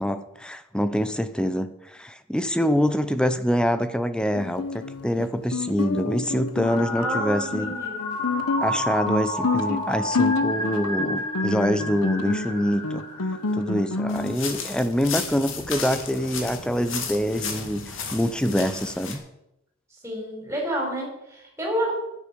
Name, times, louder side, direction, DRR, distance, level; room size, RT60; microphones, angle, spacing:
voice 1, 0.0-7.8 8.6-13.0 13.5-19.2, equal, 5° left, 11 dB, 0.7 m, -25 dB
Guitar, 4.3-14.4, left 3 dB, 80° left, 0.9 m, -29 dB
sound 1, 6.6-13.9, left 1 dB, 25° left, 2.2 m, -30 dB
voice 2, 7.0-8.2 20.0-21.9, right 1 dB, 10° right, -1 dB, 4.6 m, -29 dB
sound 2, 14.1-19.2, left 6 dB, 60° left, 2.3 m, -34 dB
12.0 x 9.8 x 7.0 m, 0.87 s
head